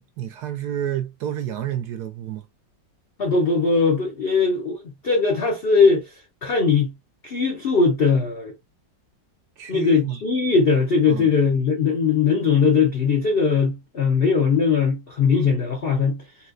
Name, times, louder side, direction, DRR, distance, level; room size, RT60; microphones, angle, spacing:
voice 1, 0.0-2.4 9.6-10.2 11.1-11.3, right 10 dB, 70° right, 1.0 m, -30 dB
voice 2, 3.2-6.1 6.4-6.9 7.2-8.5 9.7-16.2, left 5 dB, 65° left, 0.5 m, -20 dB
4.2 x 2.2 x 2.5 m
omnidirectional pair, 2.0 m